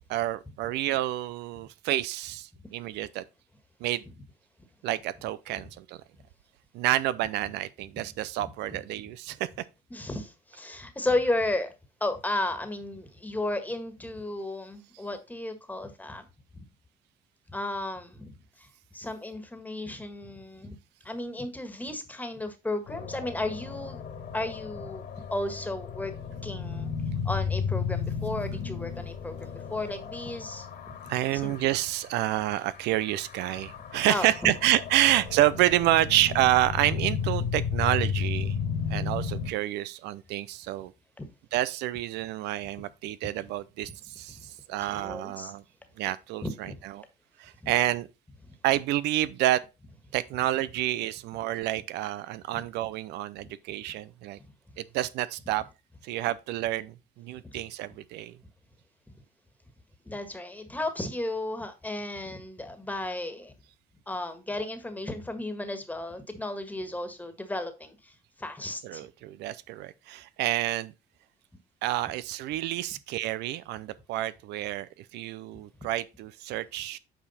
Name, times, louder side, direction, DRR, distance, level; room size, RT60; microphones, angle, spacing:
voice 1, 0.1-3.2 3.8-4.0 4.8-6.0 6.7-9.5 31.1-38.6 38.9-40.9 41.5-45.6 46.0-46.9 47.4-48.1 48.6-49.6 50.1-54.4 54.8-55.6 56.0-58.4 68.8-70.9 71.8-77.0, right 14 dB, 85° right, 0.5 m, -28 dB
voice 2, 9.9-11.7 12.0-16.2 17.5-18.3 18.6-18.7 18.9-20.8 21.0-24.0 24.3-25.0 25.3-26.1 26.4-26.9 27.2-30.9 31.3-31.6 34.1-34.5 41.2-41.3 44.3-44.4 44.9-45.5 46.4-46.7 47.6-47.7 52.5-52.6 57.4-57.6 59.1-59.2 60.0-63.5 64.1-69.0, left 2 dB, 10° left, 1.7 m, -34 dB
sound 1, 22.9-32.3 32.6-39.5, left 6 dB, 65° left, 2.4 m, -34 dB
8.9 x 4.9 x 4.2 m
cardioid pair, 110°, 17 cm